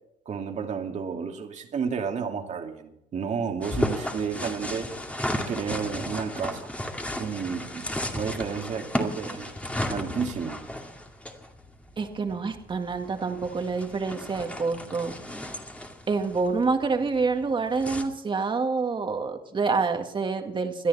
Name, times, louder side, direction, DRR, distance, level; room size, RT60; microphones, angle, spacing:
voice 1, 0.3-4.9 5.5-6.7 7.2-7.9 8.1-9.5 9.9-10.6, right 6 dB, 45° right, 4 dB, 2.3 m, -31 dB
sound 1, 3.6-18.0, left 1 dB, 10° left, 2.3 m, -34 dB
voice 2, 12.0-15.1 16.1-20.9, right 4 dB, 30° right, 5 dB, 2.1 m, -27 dB
22.0 x 13.0 x 4.2 m, 0.78 s
cardioid pair, 110°, 17 cm